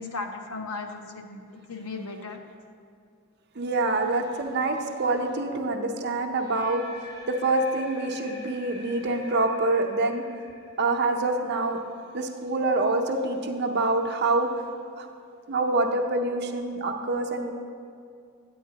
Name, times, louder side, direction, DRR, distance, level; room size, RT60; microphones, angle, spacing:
voice 1, 0.0-1.4 1.7-2.4, left 3 dB, 80° left, 4 dB, 0.7 m, -36 dB
voice 2, 3.6-6.9 7.3-10.2 10.8-11.8 12.1-14.5 15.0-15.1 15.5-17.5, right 2 dB, 50° right, 3 dB, 0.6 m, -26 dB
sound 1, 6.3-12.3, left 2 dB, 20° left, 0.6 m, -47 dB
9.4 x 8.6 x 2.8 m, 2.4 s
head